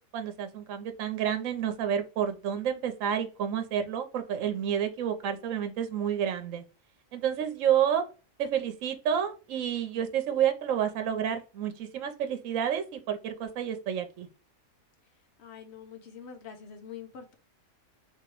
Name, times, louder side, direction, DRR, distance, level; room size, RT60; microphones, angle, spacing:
voice 1, 0.1-6.6 7.1-8.0 8.4-14.3, right 9 dB, 70° right, 7 dB, 1.0 m, -29 dB
voice 2, 15.4-17.3, left 7 dB, 55° left, 5 dB, 1.0 m, -45 dB
3.1 x 2.9 x 4.5 m, 0.32 s
omnidirectional pair, 1.5 m